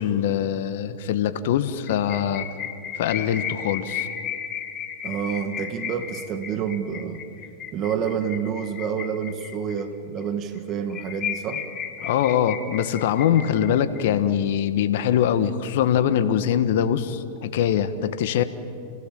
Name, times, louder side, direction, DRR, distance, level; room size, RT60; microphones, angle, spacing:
voice 1, 0.0-2.5 3.0-4.1 12.0-18.4, left 9 dB, 65° left, 10 dB, 1.5 m, -23 dB
sound 1, 1.9-9.8 10.2-10.3 10.6-10.7 10.9-14.0, left 9 dB, 35° left, 2.8 m, -34 dB
voice 2, 5.0-7.2 7.7-11.6, right 7 dB, 40° right, 7 dB, 2.2 m, -28 dB
29.0 x 18.5 x 7.7 m, 2.4 s
hypercardioid pair, 105°, 0 cm